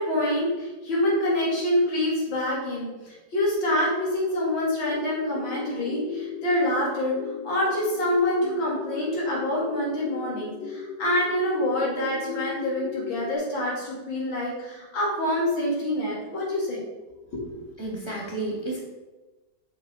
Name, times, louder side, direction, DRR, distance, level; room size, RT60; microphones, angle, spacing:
voice 1, 0.0-7.1 7.4-16.8, left 1 dB, 90° left, -5 dB, 2.9 m, -26 dB
sound 1, 4.9-13.4, left 5 dB, 70° left, 1.1 m, -36 dB
voice 2, 17.8-18.8, right 2 dB, 15° right, -5 dB, 1.3 m, -31 dB
5.8 x 5.4 x 4.7 m, 1.1 s
omnidirectional pair, 2.1 m